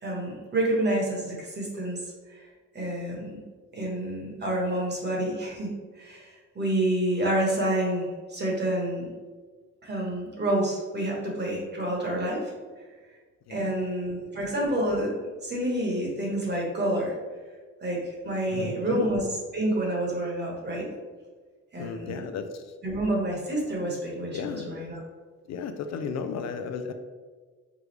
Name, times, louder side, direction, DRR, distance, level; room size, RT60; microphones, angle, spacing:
voice 1, 0.0-2.0 2.3-2.4 2.7-3.4 3.7-9.1 9.8-12.5 13.5-15.2 15.4-17.1 17.8-20.9 21.7-22.2 22.8-25.0, right 1 dB, 35° right, -2 dB, 1.3 m, -28 dB
voice 2, 18.5-19.1 21.8-22.6 24.3-24.7 25.5-26.9, left 6 dB, 60° left, 7 dB, 0.4 m, -34 dB
4.8 x 2.3 x 3.2 m, 1.4 s
cardioid pair, 90°, 30 cm